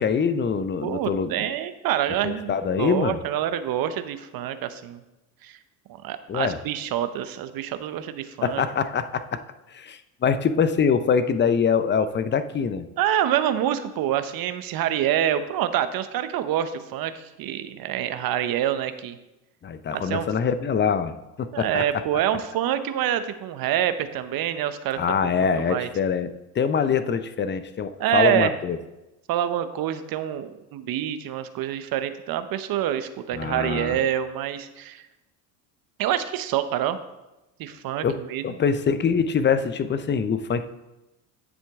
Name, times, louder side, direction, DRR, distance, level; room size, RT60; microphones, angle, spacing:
voice 1, 0.0-1.5 2.2-3.2 6.3-6.6 8.4-9.4 9.7-12.9 19.6-21.8 25.0-26.3 26.5-28.8 33.3-34.0 38.0-40.7, left 6 dB, 25° left, 12 dB, 0.6 m, -24 dB
voice 2, 0.8-5.0 5.4-5.6 6.0-8.6 13.0-19.2 19.9-20.3 21.5-25.0 25.3-25.9 28.0-28.5 29.3-35.0 36.0-37.0 37.6-38.6, right 11 dB, 50° right, 11 dB, 0.9 m, -26 dB
9.9 x 7.4 x 3.6 m, 0.98 s
supercardioid pair, 90°, 47 cm